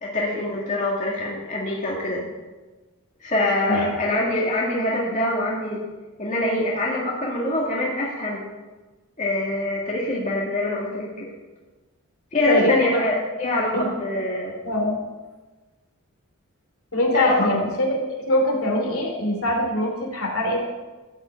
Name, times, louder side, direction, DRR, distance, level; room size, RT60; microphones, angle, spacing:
voice 1, 0.0-2.2 3.2-5.8 6.2-8.4 9.2-11.3 12.3-14.5 17.1-17.5, left 2 dB, 35° left, -4 dB, 2.1 m, -24 dB
voice 2, 12.5-12.8 13.7-13.9 14.6-15.0 16.9-20.6, left 1 dB, 65° left, 1 dB, 2.9 m, -22 dB
13.5 x 5.9 x 8.3 m, 1.2 s
head